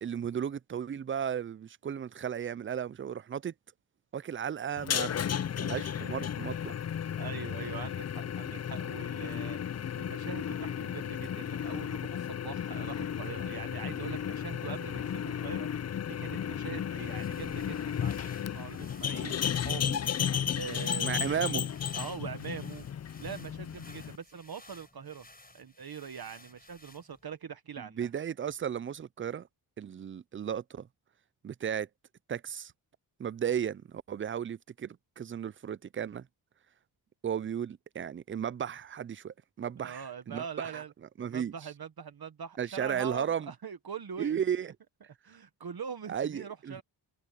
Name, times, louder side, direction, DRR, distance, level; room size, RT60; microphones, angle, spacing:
voice 1, 0.0-3.5 4.1-5.2 5.6-6.7 21.0-21.7 28.0-29.5 29.8-30.9 31.4-31.9 32.3-32.7 33.2-36.3 37.2-40.8 41.2-41.5 42.6-43.5 44.2-44.7 46.1-46.8, right 8 dB, 30° right, 0.4 m, -34 dB
sound 1, 4.8-24.2, left 9 dB, 35° left, 0.4 m, -34 dB
voice 2, 7.2-21.5 21.9-22.9 23.2-25.3 25.5-28.1 39.8-40.9 41.2-44.4 45.2-46.8, right 7 dB, 55° right, 1.3 m, -43 dB
sound 2, 16.9-27.3, left 2 dB, 20° left, 5.4 m, -56 dB
cardioid pair, 75°, 45 cm